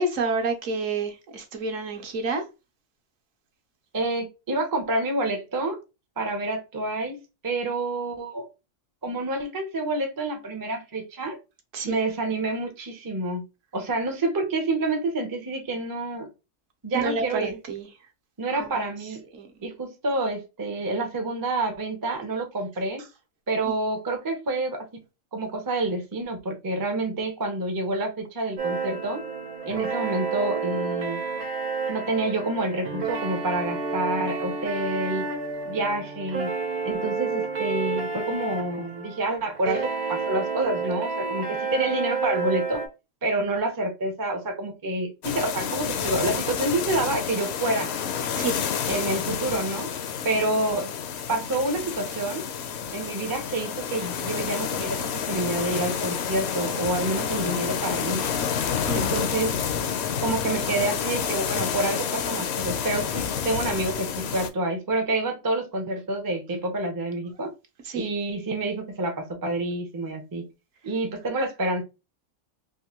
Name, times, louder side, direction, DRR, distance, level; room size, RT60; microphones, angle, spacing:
voice 1, 0.0-2.4 11.7-12.0 16.9-17.9 18.5-18.7 19.3-19.5 48.4-48.6 58.8-59.3 67.9-68.1, right 3 dB, 70° right, 1.2 m, -29 dB
voice 2, 3.9-5.8 6.2-7.2 7.4-8.5 9.0-11.4 11.8-13.4 13.7-16.3 16.8-17.6 18.4-19.2 19.6-23.0 23.5-25.0 25.3-29.2 29.7-31.2 31.9-35.2 35.6-36.5 36.8-42.8 43.2-47.9 48.9-49.9 50.2-50.9 51.3-52.5 52.9-58.2 58.9-59.6 60.2-67.5 67.9-70.5 70.8-71.8, right 2 dB, 30° right, 0.3 m, -28 dB
sound 1, 28.6-42.9, right 4 dB, 90° right, 1.4 m, -30 dB
sound 2, 45.2-64.5, left 7 dB, 65° left, 0.7 m, -29 dB
3.6 x 2.5 x 2.9 m
omnidirectional pair, 1.4 m